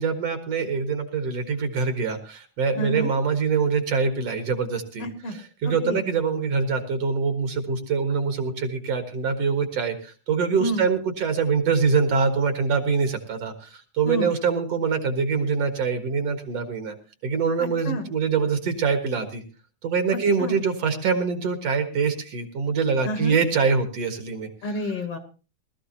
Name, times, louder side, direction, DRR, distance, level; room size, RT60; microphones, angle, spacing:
voice 1, 0.0-17.0 17.2-19.4 19.8-24.9, right 5 dB, 60° right, 7 dB, 2.4 m, -24 dB
voice 2, 2.8-3.1 5.0-5.4 5.6-6.0 10.6-10.8 14.1-14.3 17.6-18.1 20.1-20.6 23.1-23.4 24.6-25.2, equal, 55° left, 8 dB, 2.2 m, -29 dB
20.5 x 13.5 x 2.8 m, 0.33 s
omnidirectional pair, 3.4 m